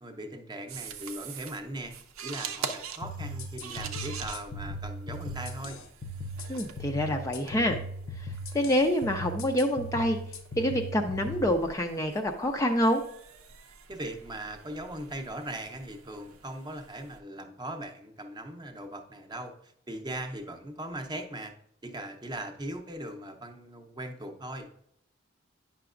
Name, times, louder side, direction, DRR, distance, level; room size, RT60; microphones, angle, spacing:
voice 1, 0.0-2.0 2.2-5.8 13.9-21.5 21.8-24.7, right 1 dB, 20° right, 5 dB, 0.7 m, -39 dB
sound 1, 0.7-17.2, right 6 dB, 85° right, 0.6 m, -44 dB
sound 2, 3.0-11.4, equal, 70° left, 0.7 m, -39 dB
voice 2, 6.5-7.8 8.2-10.2 10.6-13.0, equal, 15° left, 3 dB, 0.4 m, -27 dB
9.1 x 5.8 x 2.5 m, 0.71 s
head